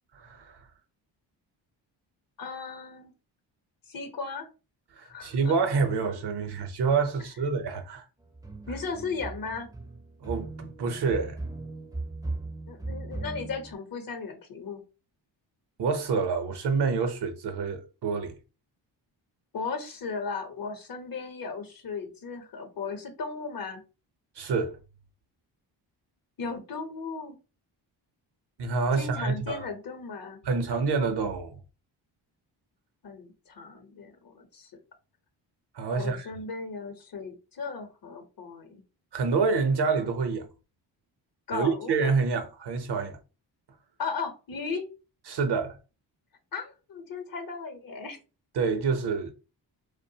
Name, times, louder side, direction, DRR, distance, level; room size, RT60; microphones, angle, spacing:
voice 1, 0.2-0.6 5.0-8.0 10.2-11.4 15.8-18.3 24.4-24.8 28.6-29.6 30.4-31.6 35.7-36.3 39.1-40.5 41.5-43.2 45.3-45.8 48.5-49.3, right 4 dB, 60° right, 0.8 m, -27 dB
voice 2, 2.4-3.1 3.9-4.5 5.0-5.5 8.7-9.7 12.7-14.8 19.5-23.8 26.4-27.4 29.0-30.4 33.0-34.7 36.0-38.8 41.5-41.9 44.0-44.8 46.5-48.2, left 4 dB, 45° left, 0.9 m, -36 dB
sound 1, 8.2-13.7, right 2 dB, 10° right, 0.5 m, -38 dB
2.5 x 2.2 x 2.7 m
cardioid pair, 60°, 46 cm